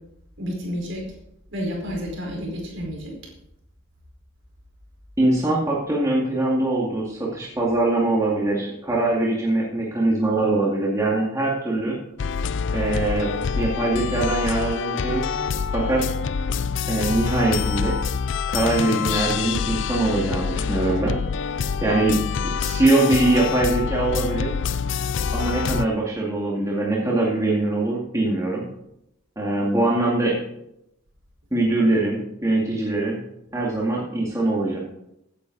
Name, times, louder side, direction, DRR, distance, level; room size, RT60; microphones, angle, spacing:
voice 1, 0.4-1.0 1.5-3.2, equal, 60° right, -1 dB, 4.8 m, -30 dB
voice 2, 5.2-12.0 12.7-13.3 13.6-15.3 15.7-16.0 16.9-18.0 18.5-21.1 21.8-22.2 22.6-24.5 25.3-28.6 29.4-30.4 31.5-33.2 33.5-34.8, right 2 dB, 15° right, -4 dB, 2.1 m, -22 dB
sound 1, 12.2-25.9, left 6 dB, 55° left, 0.4 m, -26 dB
16.0 x 9.4 x 4.1 m, 0.80 s
head